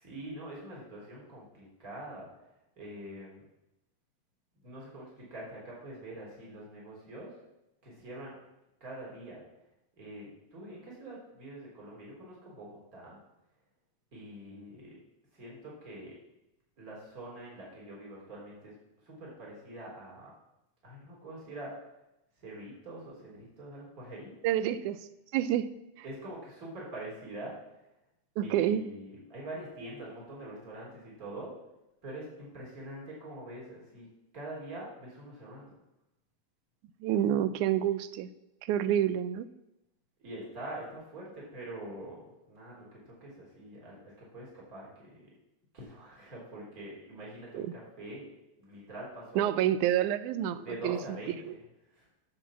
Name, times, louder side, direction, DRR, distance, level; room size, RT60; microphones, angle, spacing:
voice 1, 0.0-2.3 2.8-3.4 4.6-7.4 7.8-8.4 8.8-9.4 10.0-13.2 14.1-15.0 15.3-16.2 16.8-18.8 19.0-20.3 20.8-21.8 22.4-24.4 26.0-27.6 28.4-31.6 32.0-35.8 40.2-45.3 45.7-48.3 48.6-49.5 50.6-51.6 51.9-52.1, right 1 dB, 30° right, -4 dB, 3.6 m, -44 dB
voice 2, 24.4-25.0 25.3-25.7 28.4-28.8 37.0-38.3 38.7-39.5 47.5-47.7 49.4-51.0 51.5-51.6, right 11 dB, 90° right, 14 dB, 2.1 m, -28 dB
8.7 x 7.2 x 7.0 m, 0.89 s
omnidirectional pair, 3.4 m